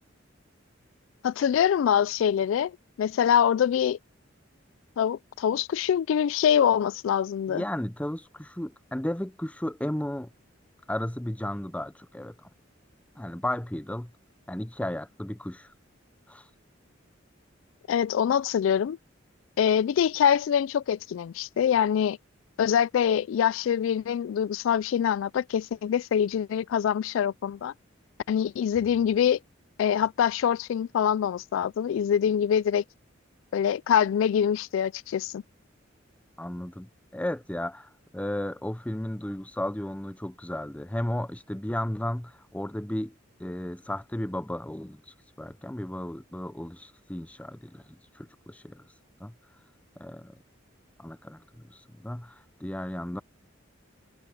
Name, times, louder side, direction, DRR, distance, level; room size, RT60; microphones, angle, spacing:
voice 1, 1.2-2.7 3.0-4.0 5.0-7.6 17.9-19.0 19.6-22.2 22.6-27.7 28.3-29.4 29.8-32.8 33.5-35.4, left 8 dB, 80° left, 0.3 m, -24 dB
voice 2, 7.5-10.3 10.9-12.5 13.2-14.1 14.5-15.7 16.3-16.5 36.4-43.1 43.4-48.8 49.2-49.3 50.0-50.4 51.0-53.2, left 1 dB, 5° left, 0.6 m, -34 dB
Bowed string instrument, 28.7-32.1, equal, 50° left, 2.9 m, -61 dB
head